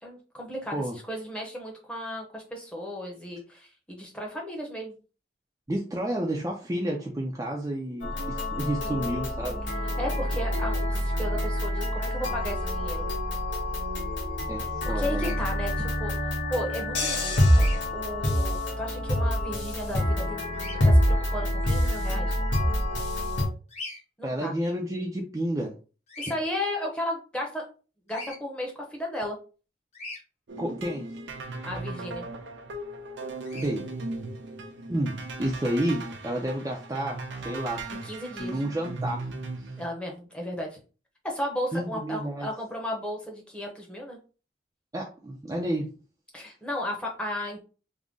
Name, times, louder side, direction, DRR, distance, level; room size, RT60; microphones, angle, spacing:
voice 1, 0.0-5.0 10.0-13.1 15.0-16.1 16.5-20.4 20.9-22.4 24.2-24.5 26.2-27.6 28.1-29.4 31.6-32.3 37.9-38.6 39.8-40.8 41.2-44.2 46.3-47.6, left 1 dB, 5° left, -1 dB, 0.8 m, -34 dB
voice 2, 5.7-9.6 14.5-15.4 24.2-25.8 30.6-31.2 33.5-33.9 34.9-37.9 38.4-39.7 41.7-42.5 44.9-45.9, right 1 dB, 15° right, -1 dB, 0.4 m, -30 dB
sound 1, 8.0-23.5, left 1 dB, 85° left, 1.2 m, -26 dB
Bird vocalization bird call bird song, 15.1-15.4 17.5-17.8 20.5-20.8 23.7-24.0 26.1-26.4 28.1-28.4 29.9-30.2 33.4-33.7, left 2 dB, 35° left, 0.9 m, -39 dB
sound 2, 30.5-39.9, right 2 dB, 80° right, 0.6 m, -38 dB
3.6 x 2.1 x 3.7 m, 0.35 s
head